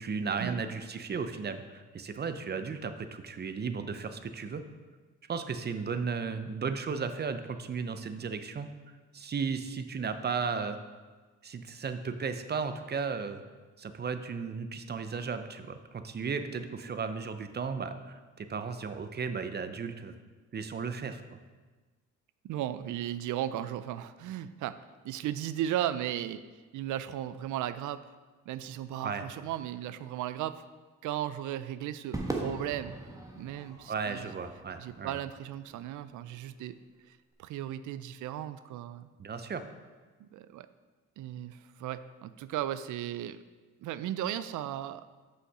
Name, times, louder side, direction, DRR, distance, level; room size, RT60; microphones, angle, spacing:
voice 1, 0.0-4.6 5.3-8.7 9.1-10.8 11.4-13.4 13.8-20.1 20.5-21.4 29.0-29.2 33.9-35.2 39.2-39.6, right 5 dB, 35° right, 9 dB, 0.6 m, -35 dB
voice 2, 22.4-26.4 26.7-28.0 28.5-30.6 31.0-33.0 33.4-34.3 34.8-36.7 37.1-39.1 40.2-40.7 41.2-43.4 43.8-45.1, right 12 dB, 75° right, 14 dB, 0.5 m, -36 dB
Crowd / Fireworks, 32.1-36.6, right 2 dB, 10° right, 1.2 m, -41 dB
6.2 x 5.7 x 5.4 m, 1.3 s
cardioid pair, 90°, 30 cm